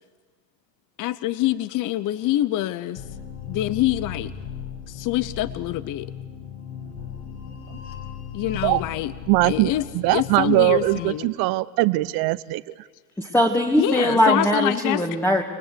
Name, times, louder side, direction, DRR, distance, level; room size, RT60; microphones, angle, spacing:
voice 1, 1.0-3.0 3.5-4.3 4.9-6.1 8.3-9.1 9.4-9.9 10.1-11.3 13.8-15.0, left 14 dB, 40° left, 16 dB, 0.8 m, -25 dB
sound 1, 3.0-11.0, left 7 dB, 70° left, 6.1 m, -36 dB
voice 2, 9.3-12.9, right 20 dB, 45° right, 17 dB, 0.8 m, -21 dB
voice 3, 13.2-15.4, equal, 5° left, 0 dB, 2.1 m, -20 dB
30.0 x 20.0 x 6.8 m, 1.4 s
hypercardioid pair, 95°, 50 cm